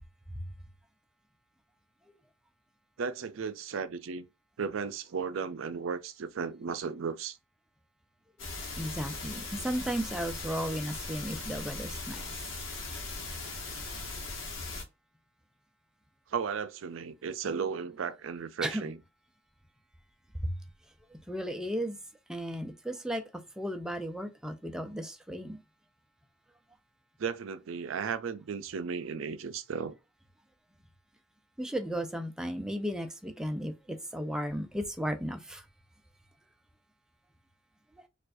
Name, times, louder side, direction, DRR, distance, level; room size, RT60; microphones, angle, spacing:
voice 1, 3.0-4.3 4.6-7.4 16.3-19.0 27.2-29.9, right 6 dB, 85° right, 0.4 m, -35 dB
sound 1, 8.4-14.8, left 3 dB, 80° left, 1.0 m, -39 dB
voice 2, 8.8-12.2 18.6-18.9 20.4-20.5 21.3-22.0 22.3-23.2 23.6-25.6 31.6-35.6, equal, 5° right, 0.4 m, -34 dB
4.4 x 2.4 x 2.5 m
head